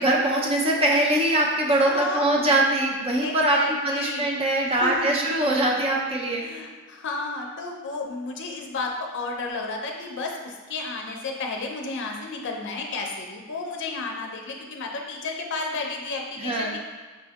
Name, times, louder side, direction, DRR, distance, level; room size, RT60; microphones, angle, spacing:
voice 1, 0.0-3.6 3.8-6.5 16.4-16.7, right 1 dB, 30° right, -1 dB, 0.5 m, -22 dB
voice 2, 1.7-2.6 3.2-4.3 4.7-5.7 6.4-16.8, left 3 dB, 60° left, 1 dB, 0.5 m, -32 dB
6.1 x 2.6 x 2.3 m, 1.3 s
head